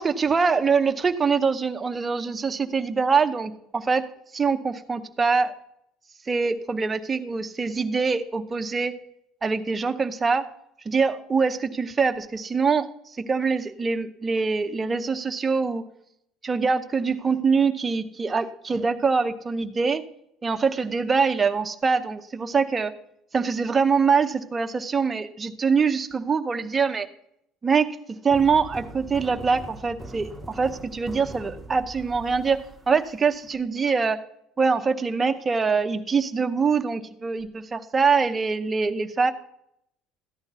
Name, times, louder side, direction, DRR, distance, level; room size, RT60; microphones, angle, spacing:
voice 1, 0.0-4.0 4.3-5.5 6.3-8.9 9.4-10.4 10.9-12.9 13.3-15.8 16.4-20.0 20.4-22.9 23.3-27.1 27.6-34.2 34.6-39.3, right 5 dB, 20° right, 6 dB, 0.7 m, -24 dB
sound 1, 28.3-33.5, right 1 dB, ahead, 1.3 m, -41 dB
14.0 x 10.5 x 4.1 m, 0.75 s
cardioid pair, 150°, 0 cm